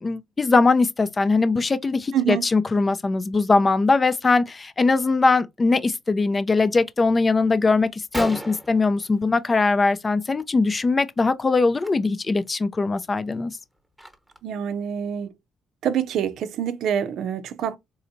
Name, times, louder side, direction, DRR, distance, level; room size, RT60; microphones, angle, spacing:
voice 1, 0.0-13.5, left 3 dB, 30° left, 0.5 m, -21 dB
voice 2, 2.1-2.5 14.4-15.3 15.8-17.8, right 9 dB, 75° right, 0.5 m, -26 dB
Gunshot gunfire, 7.5-7.6 7.9-8.0 8.1-9.8 10.1-10.4 10.7-10.9 11.7-11.9 12.4-12.5 13.0-14.6, right 1 dB, 5° right, 1.0 m, -36 dB
4.2 x 2.8 x 2.6 m
cardioid pair, 90°, 0 cm